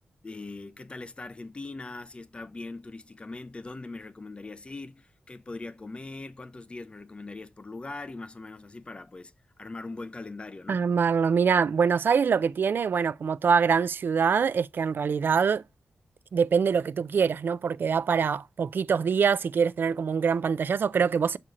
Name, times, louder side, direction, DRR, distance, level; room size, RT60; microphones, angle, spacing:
voice 1, 0.2-10.9, left 3 dB, 30° left, 0.6 m, -41 dB
voice 2, 10.7-15.6 16.3-21.4, right 6 dB, 65° right, 0.3 m, -24 dB
6.4 x 4.3 x 3.7 m
wide cardioid pair, 130°, 4 cm